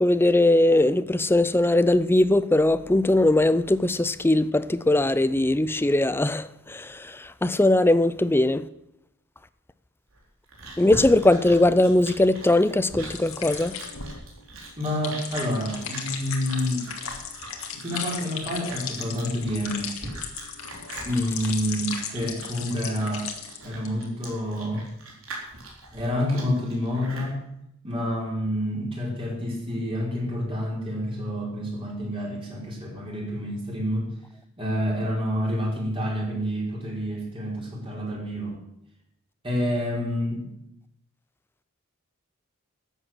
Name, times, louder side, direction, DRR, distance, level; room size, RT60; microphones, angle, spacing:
voice 1, 0.0-8.7 10.8-13.8, left 1 dB, 10° left, 0.5 m, -20 dB
Chewing mastication, 10.1-27.3, right 2 dB, 70° right, 4.1 m, -41 dB
sound 1, 13.1-23.6 23.9-24.3, left 7 dB, 75° left, 2.2 m, -36 dB
voice 2, 14.8-16.9 17.7-19.9 21.0-23.3 23.6-24.8 25.9-27.4 27.8-34.1 34.6-38.6 39.4-40.4, equal, 25° right, 4.8 m, -28 dB
13.5 x 8.2 x 7.7 m
head